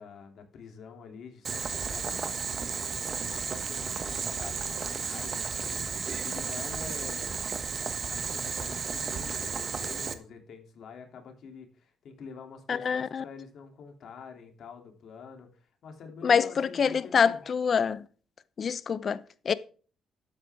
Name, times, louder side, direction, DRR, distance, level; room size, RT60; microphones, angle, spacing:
voice 1, 0.0-7.4 8.1-17.4, left 5 dB, 65° left, 2.8 m, -47 dB
Boiling, 1.4-10.1, right 5 dB, 45° right, 1.3 m, -33 dB
voice 2, 12.7-13.2 16.2-18.0 18.6-19.5, left 6 dB, 50° left, 0.7 m, -26 dB
12.0 x 8.7 x 3.6 m
cardioid pair, 90°, 0 cm